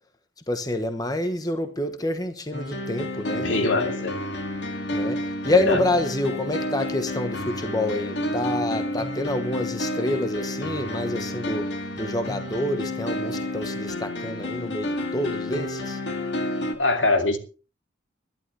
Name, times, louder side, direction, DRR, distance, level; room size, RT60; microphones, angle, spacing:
voice 1, 0.5-3.9 4.9-11.7 12.0-16.0, left 1 dB, 20° left, 1.1 m, -27 dB
sound 1, 2.5-16.7, left 1 dB, 60° left, 2.4 m, -30 dB
voice 2, 3.3-4.2 5.7-5.8 16.8-17.4, left 2 dB, 75° left, 2.5 m, -23 dB
22.0 x 11.5 x 3.4 m
head